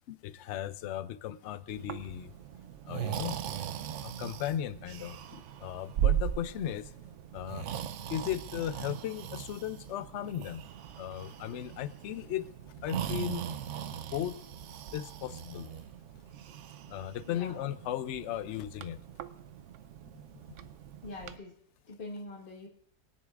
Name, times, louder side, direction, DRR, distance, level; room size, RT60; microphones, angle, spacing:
voice 1, 0.1-2.3 2.9-3.4 4.0-6.9 7.3-7.7 8.1-10.6 11.0-12.5 12.8-13.4 14.1-14.3 14.9-15.7 16.9-19.0, left 11 dB, 70° left, 14 dB, 0.7 m, -36 dB
Breathing, 1.7-21.4, right 10 dB, 65° right, 0.7 m, -38 dB
voice 2, 17.3-17.6 21.0-21.5 21.9-22.7, left 2 dB, 35° left, -1 dB, 1.3 m, -43 dB
22.5 x 10.0 x 2.5 m, 0.68 s
omnidirectional pair, 1.7 m